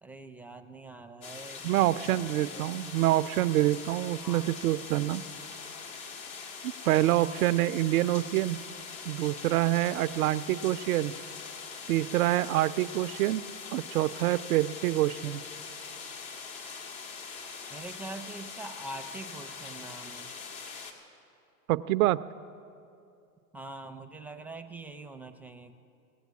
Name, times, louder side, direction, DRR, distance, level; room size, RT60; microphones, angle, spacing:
voice 1, 0.0-2.6 4.2-5.1 17.7-20.3 23.5-25.8, right 2 dB, 5° right, 6 dB, 0.6 m, -44 dB
sound 1, 1.2-20.9, left 5 dB, 65° left, 2.0 m, -42 dB
voice 2, 1.6-5.2 6.6-8.6 9.0-11.1 11.9-13.4 13.7-15.4 21.7-22.2, right 15 dB, 70° right, 14 dB, 0.5 m, -26 dB
18.0 x 7.8 x 8.3 m, 2.5 s
hypercardioid pair, 105°, 45 cm